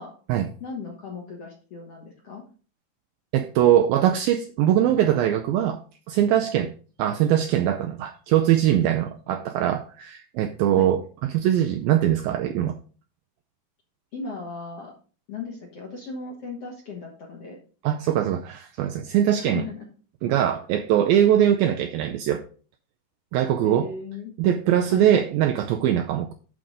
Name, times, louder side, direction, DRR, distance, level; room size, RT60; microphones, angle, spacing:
voice 1, 0.6-2.4 10.8-10.9 14.1-14.9 15.3-17.6 19.4-19.9 23.6-24.3 24.9-25.1, left 4 dB, 55° left, -1 dB, 1.8 m, -36 dB
voice 2, 3.3-5.8 6.1-6.7 7.0-11.0 11.3-12.8 17.8-19.6 20.2-22.4 23.3-23.9 24.4-26.3, right 11 dB, 85° right, 5 dB, 2.2 m, -21 dB
11.0 x 4.0 x 5.0 m, 0.39 s
omnidirectional pair, 4.7 m